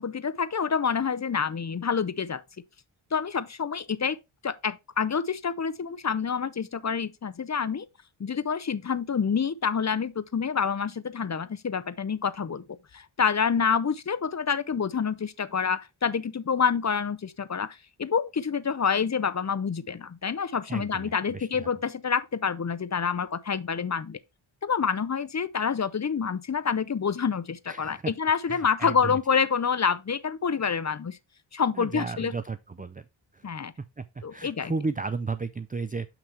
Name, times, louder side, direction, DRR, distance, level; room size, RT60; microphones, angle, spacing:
voice 1, 0.0-2.4 3.1-4.2 4.4-7.9 8.2-12.6 12.9-24.2 24.6-31.2 31.5-32.3 33.4-33.7 34.2-34.7, left 6 dB, 35° left, 0.5 m, -27 dB
voice 2, 20.7-21.7 27.7-28.1 28.5-29.2 31.7-33.0 33.3-33.4 34.0-36.1, right 4 dB, 20° right, 0.3 m, -34 dB
7.0 x 5.9 x 3.2 m
wide cardioid pair, 90°, 49 cm